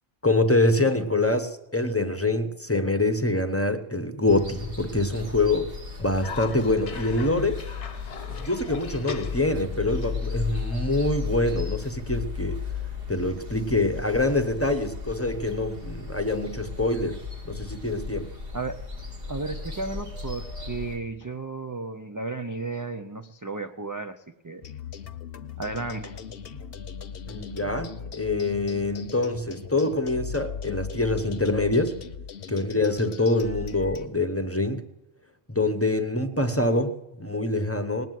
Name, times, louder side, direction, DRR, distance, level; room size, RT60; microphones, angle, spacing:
voice 1, 0.2-5.7 6.0-7.6 8.3-12.6 13.1-17.2 17.4-18.3 27.3-32.0 32.5-34.8 35.5-38.1, left 2 dB, 15° left, 8 dB, 0.7 m, -25 dB
sound 1, 4.3-21.0, left 5 dB, 60° right, 2.3 m, -35 dB
Cough, 6.2-11.3, left 7 dB, 80° left, 1.2 m, -39 dB
voice 2, 19.3-24.6 25.6-26.2, right 3 dB, 30° right, 6 dB, 0.3 m, -34 dB
sound 2, 24.6-34.1, left 6 dB, 60° left, 1.0 m, -39 dB
19.0 x 7.6 x 9.2 m, 0.96 s
omnidirectional pair, 1.1 m